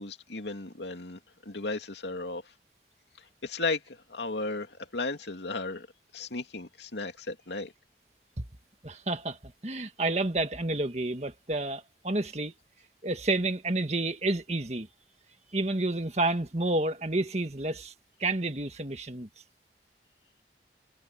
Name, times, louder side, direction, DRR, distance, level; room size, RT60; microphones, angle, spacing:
voice 1, 0.0-2.5 3.2-5.9 6.1-7.7, left 3 dB, 85° left, 2.5 m, -35 dB
voice 2, 8.8-12.5 13.0-14.9 15.5-17.9 18.2-19.3, right 2 dB, 40° right, 1.8 m, -30 dB
head